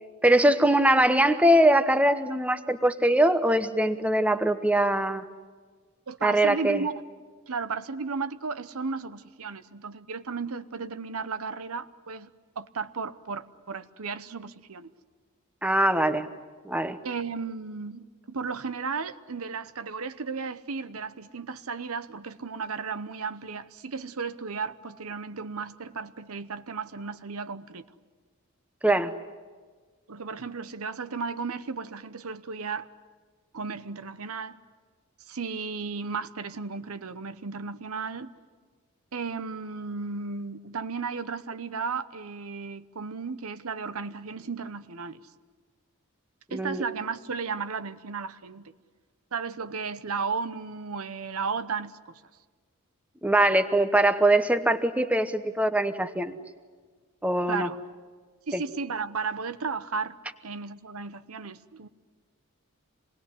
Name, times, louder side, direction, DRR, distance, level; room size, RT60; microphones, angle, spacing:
voice 1, 0.2-5.2 6.2-6.8 15.6-16.3 16.6-17.0 28.8-29.1 46.5-46.8 53.2-56.4 57.2-57.7 58.5-58.6, right 1 dB, 5° right, 0.9 m, -22 dB
voice 2, 6.1-6.9 7.5-12.3 12.6-14.9 17.0-27.8 30.1-32.9 33.5-34.6 35.3-38.3 39.1-45.2 46.5-48.7 49.3-52.1 57.5-57.8 58.5-60.2 60.4-61.9, right 5 dB, 75° right, 0.9 m, -34 dB
27.0 x 20.0 x 9.8 m
head